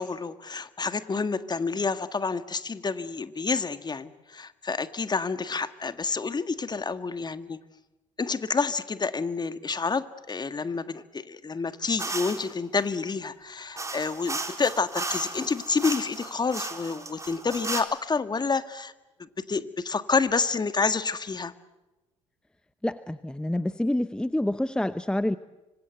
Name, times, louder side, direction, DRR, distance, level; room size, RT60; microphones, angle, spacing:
voice 1, 0.0-7.6 8.2-18.9 19.2-21.5, left 4 dB, 25° left, 11 dB, 1.7 m, -29 dB
sound 1, 12.0-12.5 13.8-17.8, right 3 dB, 20° right, 4.0 m, -35 dB
voice 2, 22.8-25.4, left 1 dB, 5° left, 14 dB, 0.9 m, -27 dB
26.0 x 25.5 x 8.0 m, 1.1 s
hypercardioid pair, 55°, 16 cm